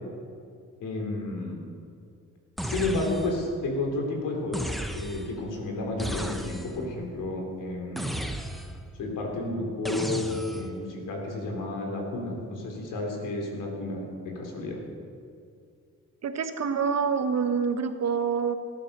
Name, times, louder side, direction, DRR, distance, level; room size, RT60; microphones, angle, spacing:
voice 1, 0.8-1.6 2.6-8.2 9.0-14.8, left 2 dB, 85° left, 1 dB, 3.6 m, -31 dB
sound 1, 2.6-3.5 4.5-5.4 6.0-6.9 8.0-8.9 9.8-10.8, equal, ahead, 1.1 m, -34 dB
voice 2, 16.2-18.6, right 6 dB, 55° right, 8 dB, 1.3 m, -26 dB
17.5 x 10.5 x 6.8 m, 2.3 s
cardioid pair, 105°, 31 cm